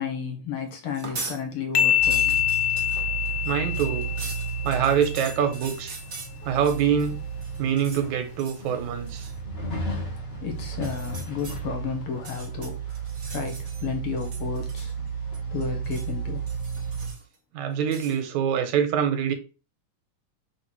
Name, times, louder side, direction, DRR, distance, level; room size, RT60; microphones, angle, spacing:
voice 1, 0.0-2.4 10.4-13.0 13.3-14.9 15.5-16.5, left 6 dB, 50° left, 2.2 m, -32 dB
sound 1, 0.9-1.4 1.8-7.1 7.4-8.1 8.4-8.7 9.1-9.4 10.7-11.6 12.1-13.9 14.2-15.1 15.3-16.1 16.5-17.3 17.9-18.2, right 3 dB, 50° right, 0.8 m, -41 dB
sound 2, 1.7-5.3, left 10 dB, 80° left, 1.1 m, -25 dB
sound 3, 2.0-17.1, right 5 dB, 30° left, 1.2 m, -33 dB
voice 2, 3.4-4.1 4.6-6.0 6.4-7.2 7.6-9.3 17.5-19.3, right 8 dB, 75° right, 2.4 m, -25 dB
5.9 x 3.6 x 6.0 m
omnidirectional pair, 3.5 m